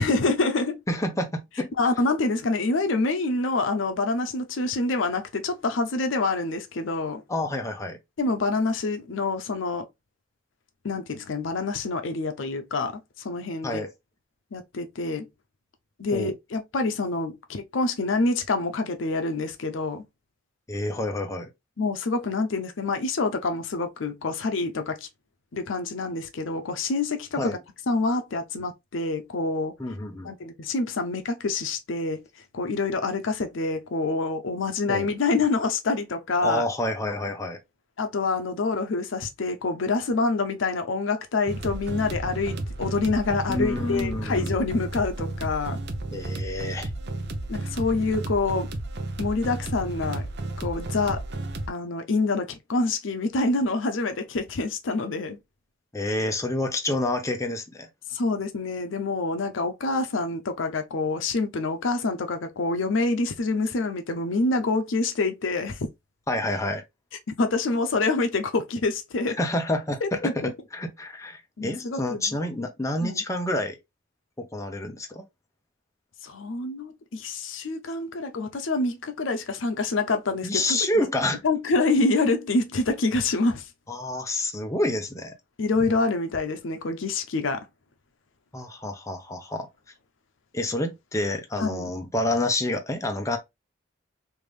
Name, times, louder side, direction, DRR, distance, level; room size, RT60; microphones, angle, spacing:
voice 1, 0.0-0.8 1.8-7.2 8.2-9.9 10.8-13.8 14.5-15.3 16.0-20.0 21.8-25.1 25.5-27.6 27.9-29.8 30.2-32.2 32.5-36.6 38.0-45.8 47.5-48.7 49.2-50.3 50.6-51.2 51.7-55.4 58.1-65.8 67.4-69.4 70.0-70.5 71.6-72.4 73.0-73.2 76.2-80.8 81.4-83.7 85.6-87.7 91.6-91.9, left 3 dB, 75° left, 0.6 m, -26 dB
voice 2, 0.9-1.7 7.3-8.0 13.6-13.9 16.1-16.3 20.7-21.5 27.4-27.6 29.8-30.3 34.9-35.1 36.4-37.6 43.5-44.5 46.1-46.9 55.9-57.9 66.3-66.8 69.4-73.8 74.4-75.2 80.4-81.4 83.9-85.3 88.5-89.7 90.5-93.4, left 1 dB, 15° left, 0.6 m, -28 dB
sound 1, 41.5-51.7, right 2 dB, 60° right, 0.6 m, -32 dB
3.3 x 2.6 x 3.2 m
head